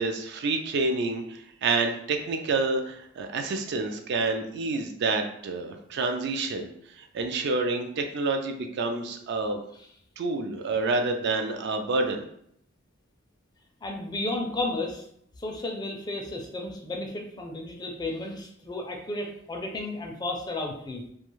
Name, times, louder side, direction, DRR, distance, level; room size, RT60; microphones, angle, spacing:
voice 1, 0.0-6.7 6.9-9.6 10.2-12.3, right 3 dB, 60° right, 5 dB, 0.4 m, -28 dB
voice 2, 13.8-15.0 15.4-21.1, left 2 dB, 20° left, 2 dB, 0.4 m, -33 dB
2.3 x 2.2 x 3.0 m, 0.69 s
head